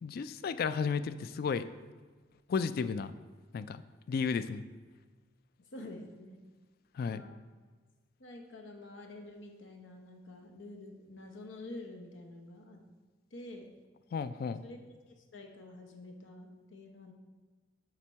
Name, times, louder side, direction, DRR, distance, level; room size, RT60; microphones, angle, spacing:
voice 1, 0.0-1.6 2.5-3.1 3.5-3.8 4.1-4.6 7.0-7.2 14.1-14.6, left 5 dB, 50° left, 14 dB, 0.3 m, -33 dB
voice 2, 5.6-6.4 7.1-7.3 8.2-12.8 13.3-13.7 14.6-14.8 15.1-17.1, left 2 dB, 90° left, 2 dB, 0.9 m, -48 dB
7.3 x 5.1 x 4.6 m, 1.4 s
head